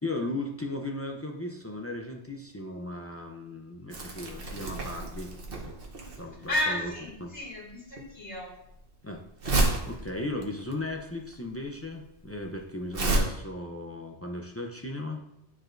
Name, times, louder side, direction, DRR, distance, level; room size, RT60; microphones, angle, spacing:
voice 1, 0.0-5.3 5.6-5.7 6.2-6.9 7.2-7.3 9.0-15.2, left 2 dB, 20° left, 2 dB, 0.4 m, -36 dB
Crumpling crinkling, 3.9-13.2, right 2 dB, 55° right, 1.2 m, -31 dB
voice 2, 6.5-8.6, left 1 dB, 80° left, -6 dB, 2.5 m, -32 dB
9.6 x 4.8 x 2.6 m, 0.84 s
omnidirectional pair, 1.1 m